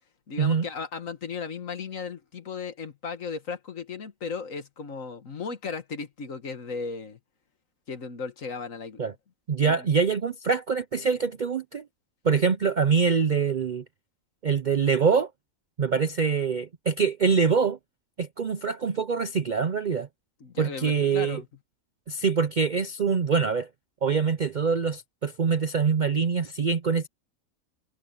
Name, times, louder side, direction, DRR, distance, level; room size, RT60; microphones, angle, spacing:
voice 1, 0.3-7.2 7.9-9.0 9.6-9.9 20.4-21.5, left 5 dB, 65° left, 2.0 m, -36 dB
voice 2, 9.5-11.8 12.2-13.8 14.4-15.3 15.8-17.8 18.2-20.1 20.6-21.4 22.1-23.7 24.0-27.1, right 5 dB, 50° right, 0.5 m, -24 dB
omnidirectional pair, 1.5 m